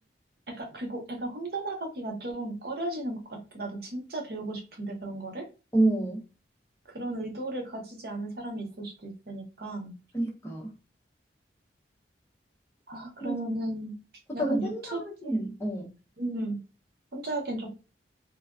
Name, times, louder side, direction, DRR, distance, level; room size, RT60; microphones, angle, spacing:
voice 1, 0.5-5.5 6.9-10.0 12.9-13.9 14.3-15.3 16.2-16.6 17.1-17.7, right 1 dB, 60° right, 2 dB, 0.8 m, -35 dB
voice 2, 5.7-6.2 10.1-10.7 13.2-13.3 14.4-15.9, right 2 dB, 15° left, -2 dB, 0.7 m, -28 dB
3.2 x 2.2 x 2.4 m, 0.32 s
head